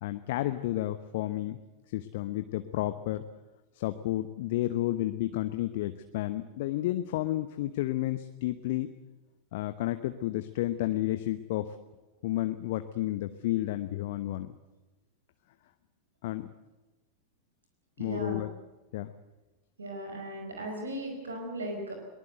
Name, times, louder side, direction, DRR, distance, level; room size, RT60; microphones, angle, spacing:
voice 1, 0.0-1.6 1.9-3.2 3.7-8.9 9.5-11.7 12.2-14.5 16.2-16.5 18.0-18.5 18.9-19.1, left 15 dB, 50° left, 10 dB, 1.0 m, -31 dB
voice 2, 18.0-18.4 19.8-21.9, right 1 dB, 70° right, 2 dB, 5.2 m, -37 dB
22.5 x 20.0 x 8.1 m, 1.1 s
figure-of-eight pair, 90°, 0 cm